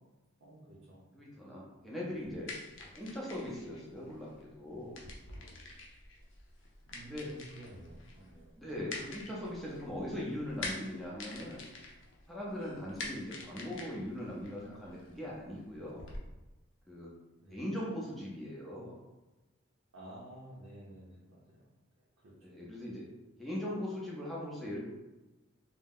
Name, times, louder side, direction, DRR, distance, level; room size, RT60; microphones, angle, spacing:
voice 1, 0.4-1.0 6.9-8.5 17.4-17.7 19.9-21.7 22.0-22.6, right 1 dB, 80° right, -6 dB, 0.6 m, -52 dB
voice 2, 1.1-5.0 7.0-7.3 8.6-11.7 12.3-16.1 16.9-17.1 17.5-18.9 22.4-23.1 23.4-24.8, left 1 dB, ahead, -6 dB, 0.6 m, -40 dB
sound 1, 2.1-16.2, left 2 dB, 65° left, 0.5 m, -47 dB
2.7 x 2.0 x 3.7 m, 1.1 s
head